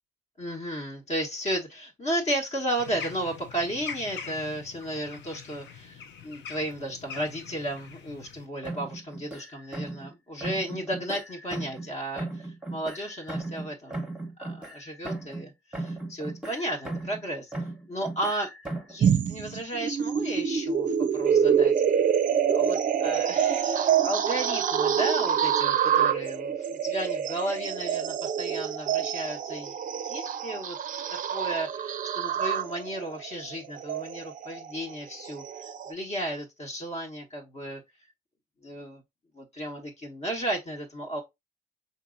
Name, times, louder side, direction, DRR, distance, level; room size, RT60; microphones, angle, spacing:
voice 1, 0.4-14.1 14.4-17.5 17.9-18.5 18.9-21.7 22.5-29.7 30.0-30.8 31.3-35.4 35.9-37.8 38.6-39.0 39.3-41.2, right 1 dB, 35° left, 1.1 m, -34 dB
sound 1, 2.8-8.5, left 6 dB, 70° left, 0.7 m, -43 dB
sound 2, 8.6-10.1 10.4-11.9 12.2-15.5 15.7-17.2 17.5-19.0, right 2 dB, 5° right, 1.0 m, -37 dB
sound 3, 19.0-35.9, right 8 dB, 45° right, 0.4 m, -26 dB
4.0 x 2.9 x 2.5 m
supercardioid pair, 65°, 19 cm